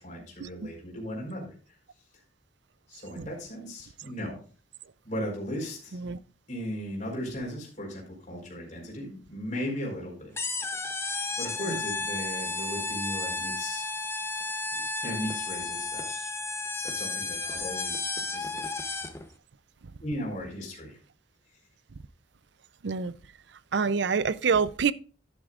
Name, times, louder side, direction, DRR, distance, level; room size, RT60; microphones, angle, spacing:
voice 1, 0.0-1.5 2.9-4.4 5.0-6.0 6.5-10.3 11.4-13.9 15.0-16.3 16.8-18.6 20.0-21.0, equal, 40° left, 4.4 m, -37 dB
sound 1, 10.4-19.3, left 3 dB, 15° left, 0.7 m, -33 dB
voice 2, 23.7-24.9, right 5 dB, 65° right, 0.5 m, -25 dB
11.0 x 10.5 x 2.4 m
head